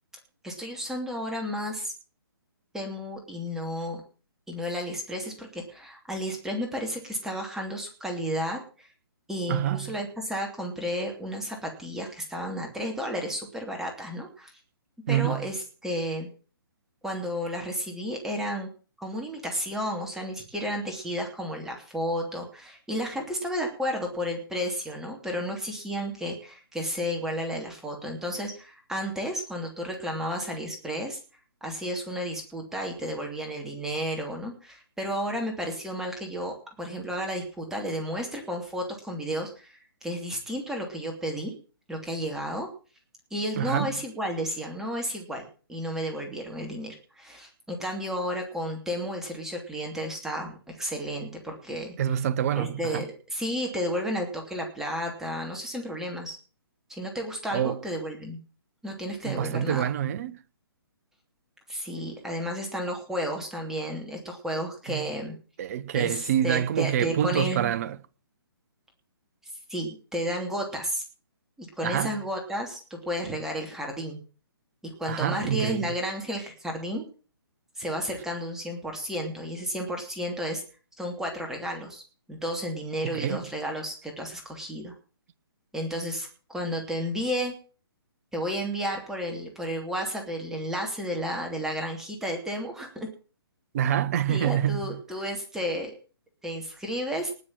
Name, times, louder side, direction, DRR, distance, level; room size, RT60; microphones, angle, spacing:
voice 1, 0.4-1.9 2.7-4.0 4.5-8.9 9.3-14.5 15.1-16.3 17.0-18.7 19.0-31.2 31.6-41.5 41.9-42.7 43.3-45.4 45.7-51.9 52.5-56.4 56.9-58.4 58.8-59.8 61.7-65.3 65.9-67.7 69.7-71.0 71.6-74.2 75.0-77.0 77.8-80.6 81.0-82.0 82.3-84.9 85.7-87.5 88.3-93.1 94.3-95.9 96.4-97.3, equal, 5° right, 2.9 m, -32 dB
voice 2, 9.5-10.0 15.1-15.5 43.6-44.0 52.0-53.1 57.5-57.8 59.2-60.4 64.9-65.1 65.6-68.0 71.8-72.2 75.1-75.9 83.0-83.4 93.7-95.0, right 10 dB, 40° right, 1.0 m, -27 dB
19.0 x 6.6 x 7.6 m
figure-of-eight pair, 135°, 13 cm